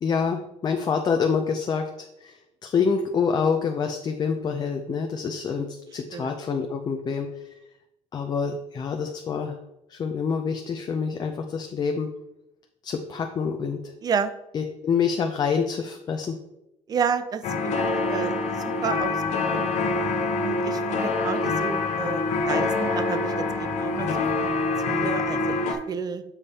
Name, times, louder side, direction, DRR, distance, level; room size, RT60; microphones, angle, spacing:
voice 1, 0.0-5.7 5.9-7.3 8.1-9.6 9.9-12.1 12.8-13.8 14.5-16.4, left 6 dB, 30° left, 4 dB, 0.6 m, -26 dB
voice 2, 14.0-14.3 16.9-19.2 19.5-19.6 20.4-26.2, right 6 dB, 25° right, 12 dB, 0.5 m, -31 dB
sound 1, 17.4-25.7, left 3 dB, 55° left, 1.0 m, -25 dB
7.1 x 5.1 x 4.2 m, 0.87 s
cardioid pair, 155°, 14 cm